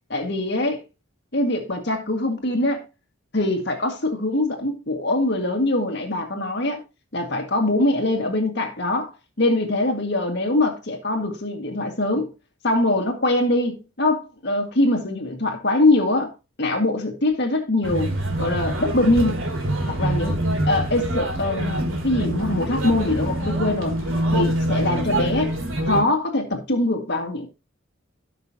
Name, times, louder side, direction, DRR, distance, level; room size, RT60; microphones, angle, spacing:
voice 1, 0.1-0.8 1.3-2.8 3.3-6.8 7.1-12.3 12.6-16.3 16.6-18.1 18.4-19.4 19.9-20.4 20.7-24.0 24.3-25.5 25.8-27.5, left 2 dB, 55° left, 1.9 m, -23 dB
sound 1, 17.8-26.0, right 1 dB, 75° right, 3.8 m, -25 dB
17.0 x 6.0 x 2.8 m
head